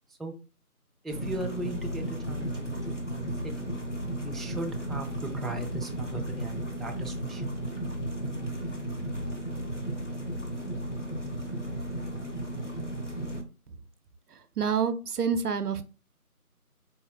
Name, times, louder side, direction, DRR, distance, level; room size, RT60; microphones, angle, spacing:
voice 1, 1.0-3.3 3.6-3.7 4.2-7.4, right 2 dB, ahead, 3 dB, 0.3 m, -38 dB
sound 1, 1.1-13.4, right 1 dB, 55° left, 0.6 m, -34 dB
voice 2, 14.6-15.8, right 6 dB, 80° right, 12 dB, 0.5 m, -27 dB
3.9 x 2.1 x 2.5 m, 0.33 s
figure-of-eight pair, 180°, 45 cm